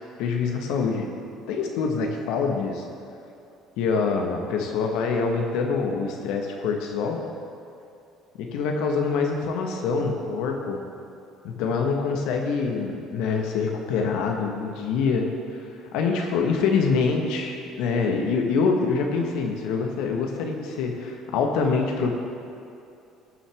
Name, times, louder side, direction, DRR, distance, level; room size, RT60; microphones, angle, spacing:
voice 1, 0.2-1.1 1.5-2.8 3.8-7.2 8.4-10.8 11.4-22.1, left 5 dB, 70° left, 2 dB, 1.4 m, -25 dB
19.0 x 7.1 x 3.6 m, 2.6 s
hypercardioid pair, 65°, 0 cm